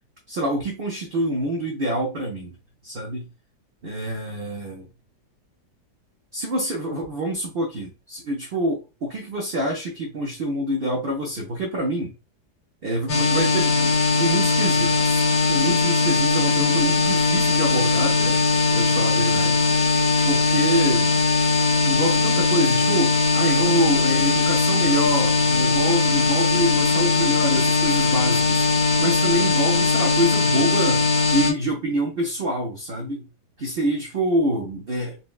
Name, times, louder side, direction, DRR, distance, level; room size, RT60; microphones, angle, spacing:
voice 1, 0.3-2.5 2.8-3.3 3.8-4.9 6.3-12.1 12.8-18.4 18.7-19.6 20.2-21.1 21.8-28.7 29.0-31.0 31.3-33.3 33.6-35.2, right 1 dB, 60° right, 0.6 m, -26 dB
sound 1, 13.1-31.5, left 3 dB, 60° left, 1.2 m, -20 dB
4.0 x 2.2 x 2.4 m
omnidirectional pair, 1.8 m